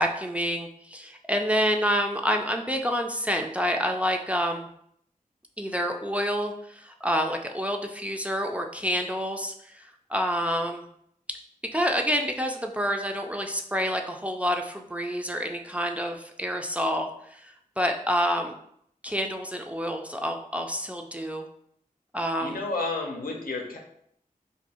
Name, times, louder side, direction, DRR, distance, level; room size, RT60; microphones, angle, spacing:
voice 1, 0.0-4.7 5.6-9.8 10.1-10.8 11.7-18.5 19.0-21.4 22.1-22.6, equal, 10° right, 3 dB, 0.3 m, -28 dB
voice 2, 22.4-23.8, left 3 dB, 85° left, 1 dB, 0.7 m, -31 dB
2.6 x 2.6 x 4.2 m, 0.69 s
wide cardioid pair, 95°, 15 cm